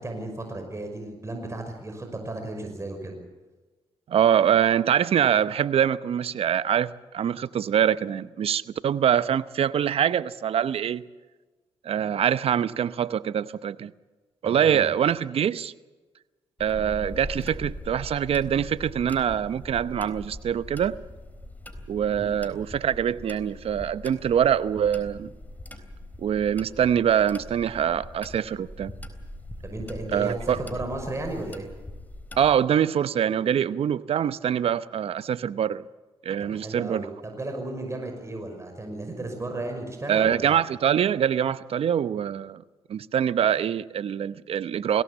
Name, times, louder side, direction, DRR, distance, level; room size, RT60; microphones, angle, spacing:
voice 1, 0.0-3.2 14.4-14.9 22.1-22.3 29.6-31.7 36.5-40.6, right 2 dB, 25° right, 4 dB, 5.8 m, -34 dB
voice 2, 4.1-11.0 11.8-13.9 14.4-15.7 16.6-20.9 21.9-25.3 26.2-28.9 30.1-30.6 32.4-35.8 36.2-37.0 40.1-42.6 42.9-45.0, right 9 dB, 65° right, 15 dB, 0.8 m, -24 dB
sound 1, 16.6-32.6, left 1 dB, 15° left, 3.8 m, -41 dB
21.5 x 17.0 x 8.5 m, 1.2 s
supercardioid pair, 50°, 11 cm